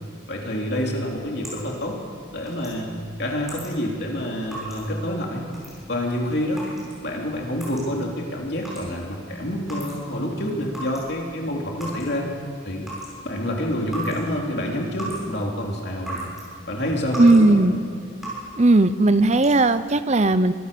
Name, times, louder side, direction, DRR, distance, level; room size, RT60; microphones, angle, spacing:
voice 1, 0.3-2.0 2.3-2.9 3.2-5.4 5.9-6.6 7.0-12.3 12.6-12.9 13.2-16.3 16.7-17.6, equal, 60° left, 0 dB, 3.3 m, -27 dB
sound 1, 1.4-10.3 10.5-16.5 16.8-17.5 17.8-18.6 19.1-19.8, right 1 dB, ahead, 6.7 m, -38 dB
voice 2, 17.2-17.8 18.6-20.5, right 2 dB, 35° right, 13 dB, 0.7 m, -16 dB
24.5 x 15.5 x 7.0 m, 2.2 s
head